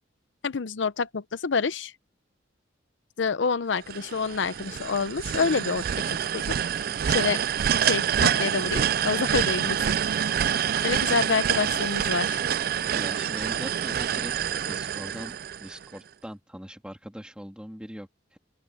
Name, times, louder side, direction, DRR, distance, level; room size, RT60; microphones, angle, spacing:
voice 1, 0.4-1.9 3.2-6.4 7.1-7.4 7.8-9.8 10.8-12.4, left 5 dB, 75° left, 0.6 m, -27 dB
sound 1, 3.9-16.0, right 9 dB, 50° right, 0.4 m, -27 dB
voice 2, 12.9-18.4, equal, 5° right, 2.8 m, -41 dB
open air
head